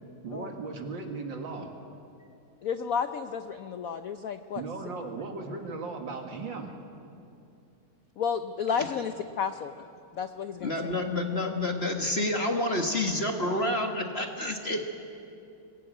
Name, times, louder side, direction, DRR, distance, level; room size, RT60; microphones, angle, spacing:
voice 1, 0.2-1.7 4.6-6.7, right 3 dB, 60° right, 3 dB, 2.6 m, -37 dB
voice 2, 2.6-4.6 8.2-9.9 10.1-10.9, left 6 dB, 75° left, 9 dB, 0.7 m, -32 dB
voice 3, 10.6-14.8, left 1 dB, 30° left, 3 dB, 1.5 m, -28 dB
23.5 x 18.5 x 9.2 m, 2.6 s
omnidirectional pair, 2.4 m